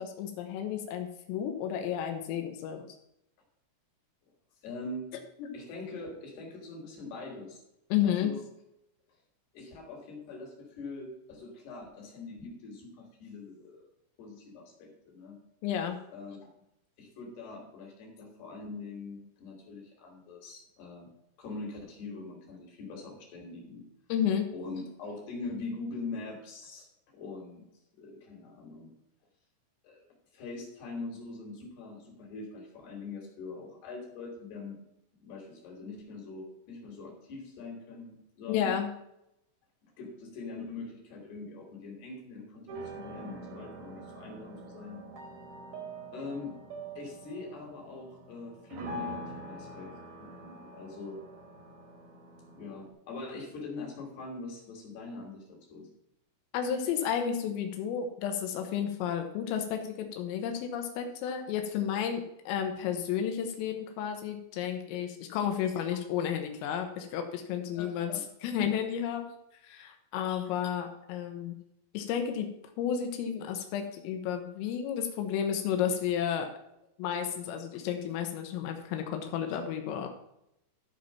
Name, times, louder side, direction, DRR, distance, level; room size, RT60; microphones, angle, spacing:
voice 1, 0.0-2.9 5.4-5.6 7.9-8.3 15.6-16.0 24.1-24.5 38.5-38.9 56.5-68.1 68.4-69.3 69.6-71.6 71.9-72.5 72.8-76.5 77.0-80.1, left 9 dB, 90° left, 5 dB, 3.8 m, -32 dB
voice 2, 4.6-5.1 5.5-7.6 8.0-8.4 9.5-13.9 14.2-15.4 16.1-16.4 17.0-21.1 21.4-23.8 24.5-27.7 28.0-28.9 29.8-30.1 30.3-34.8 35.2-38.8 39.8-45.0 46.1-46.5 47.0-49.9 50.2-51.2 52.5-55.9 67.7-68.2 70.3-70.4, left 3 dB, 55° left, 0 dB, 4.5 m, -43 dB
sound 1, 42.7-52.9, right 1 dB, 55° right, 2.5 m, -44 dB
14.0 x 5.3 x 5.8 m, 0.81 s
omnidirectional pair, 5.8 m